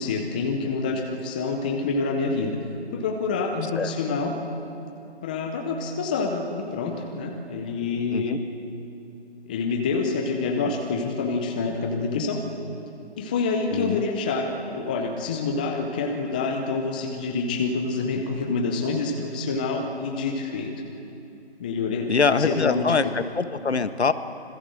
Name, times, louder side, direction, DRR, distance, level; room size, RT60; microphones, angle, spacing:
voice 1, 0.0-2.6 2.9-4.3 5.2-8.4 9.5-12.4 13.2-20.7 21.6-23.1, left 4 dB, 10° left, 3 dB, 0.6 m, -27 dB
voice 2, 13.7-14.0 22.1-24.1, left 5 dB, 75° left, 11 dB, 1.5 m, -23 dB
26.0 x 21.5 x 7.7 m, 2.9 s
figure-of-eight pair, 150°, 33 cm